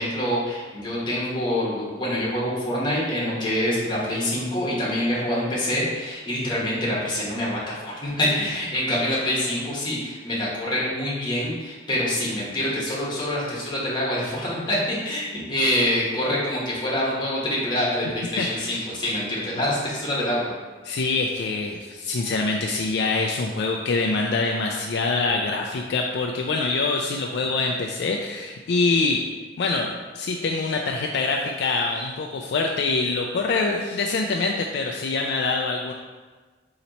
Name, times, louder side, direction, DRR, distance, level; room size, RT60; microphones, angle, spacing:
voice 1, 0.0-20.5, left 1 dB, 25° left, -6 dB, 1.1 m, -26 dB
voice 2, 18.4-18.9 20.8-29.2 29.6-35.9, left 3 dB, 60° left, 1 dB, 0.3 m, -25 dB
4.2 x 2.9 x 4.0 m, 1.4 s
head